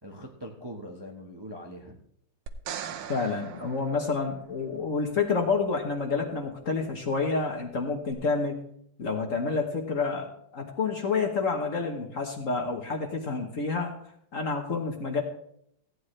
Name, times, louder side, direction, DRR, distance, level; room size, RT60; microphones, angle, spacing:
voice 1, 0.0-2.0, equal, 20° right, 1 dB, 0.7 m, -42 dB
sound 1, 2.5-4.8 8.1-8.2, right 8 dB, 85° right, 1.7 m, -40 dB
voice 2, 3.1-8.5 9.0-13.9 14.3-15.2, left 4 dB, 45° left, 3 dB, 1.3 m, -29 dB
15.5 x 9.4 x 3.2 m, 0.69 s
omnidirectional pair, 2.2 m